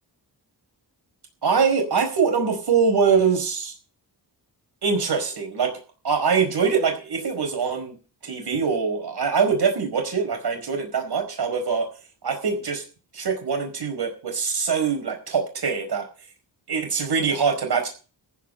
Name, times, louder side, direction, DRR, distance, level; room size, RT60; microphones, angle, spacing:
voice 1, 1.4-3.7 4.8-5.7 6.0-8.0 8.2-11.9 12.2-12.8 13.1-16.1 16.7-17.9, right 5 dB, 65° right, 3 dB, 5.0 m, -23 dB
15.0 x 6.1 x 8.9 m, 0.36 s
wide cardioid pair, 155°, 42 cm